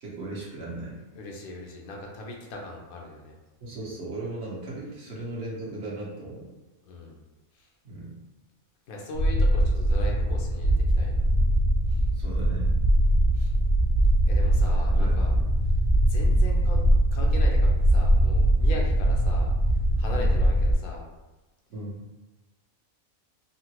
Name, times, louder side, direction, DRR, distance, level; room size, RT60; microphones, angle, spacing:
voice 1, 0.0-1.0 3.6-6.5 7.8-8.1 12.1-12.8 14.9-15.4 20.1-20.3 21.7-22.1, right 2 dB, 55° right, -5 dB, 1.0 m, -37 dB
voice 2, 1.1-3.3 6.9-7.2 7.5-7.7 8.9-11.3 11.9-12.0 13.3-13.5 14.3-15.3 16.1-16.8 17.1-19.5 20.0-21.1, left 2 dB, 80° left, -1 dB, 1.1 m, -39 dB
sound 1, 9.1-20.7, right 1 dB, 60° left, 0.8 m, -22 dB
3.7 x 2.1 x 2.9 m, 1.1 s
omnidirectional pair, 1.5 m